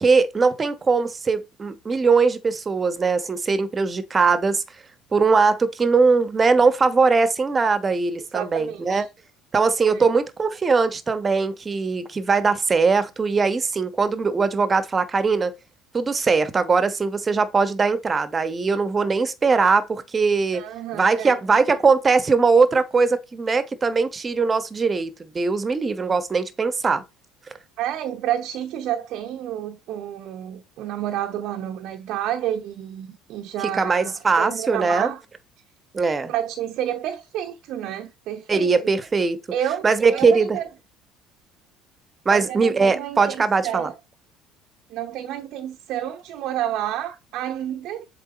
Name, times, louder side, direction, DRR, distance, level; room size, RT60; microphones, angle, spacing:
voice 1, 0.0-4.6 5.1-9.1 9.5-15.5 15.9-20.6 20.9-27.0 33.7-35.1 35.9-36.3 38.5-39.4 39.8-40.6 42.2-43.9, right 4 dB, 30° right, 1.1 m, -20 dB
voice 2, 8.3-9.1 9.9-10.1 20.5-21.4 27.8-35.2 36.3-38.7 39.5-39.9 40.1-40.7 42.3-43.9 44.9-48.1, right 11 dB, 65° right, 0.8 m, -30 dB
7.6 x 3.4 x 4.2 m
hypercardioid pair, 70°, 0 cm